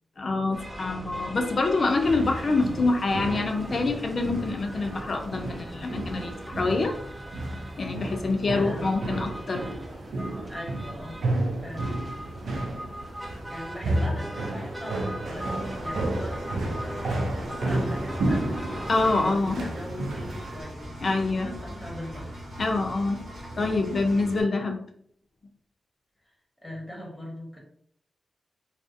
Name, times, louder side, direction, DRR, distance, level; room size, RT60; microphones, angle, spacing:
voice 1, 0.2-6.9 7.8-9.6 18.9-19.6 21.0-21.5 22.6-23.2 23.5-24.8, left 3 dB, 55° left, 3 dB, 0.4 m, -26 dB
sound 1, 0.5-19.4, equal, 15° right, 0.4 m, -41 dB
sound 2, 1.8-20.6, right 2 dB, 90° right, 0.4 m, -32 dB
voice 2, 8.5-9.0 10.5-11.2 11.6-11.9 13.5-18.5 18.9-22.4 26.2-26.3 26.6-27.6, left 1 dB, 5° left, -3 dB, 1.0 m, -40 dB
Engine, 15.3-24.4, equal, 70° right, 0.9 m, -41 dB
2.5 x 2.0 x 2.4 m, 0.64 s
cardioid pair, 75°, 0 cm